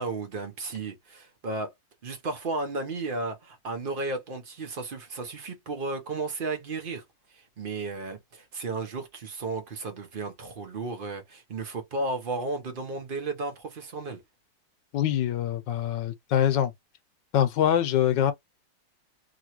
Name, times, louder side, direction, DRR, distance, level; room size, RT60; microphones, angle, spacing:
voice 1, 0.0-1.7 2.0-7.0 7.3-14.2, right 3 dB, 50° right, 0.6 m, -34 dB
voice 2, 14.9-16.7 17.3-18.3, left 10 dB, 75° left, 1.3 m, -24 dB
3.0 x 2.9 x 2.9 m
omnidirectional pair, 2.0 m